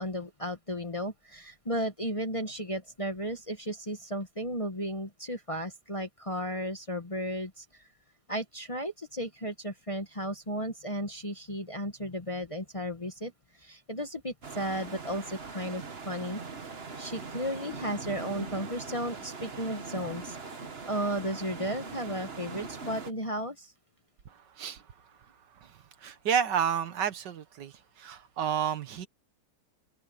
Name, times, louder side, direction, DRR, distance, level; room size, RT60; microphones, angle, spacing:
voice 1, 0.0-7.8 8.3-13.3 13.6-16.4 17.0-20.4 20.8-23.7, equal, 20° left, 1.2 m, -34 dB
sound 1, 14.4-23.1, right 4 dB, 35° right, 1.6 m, -41 dB
voice 2, 26.0-27.7 28.0-29.1, right 8 dB, 70° right, 1.8 m, -30 dB
omnidirectional pair, 2.0 m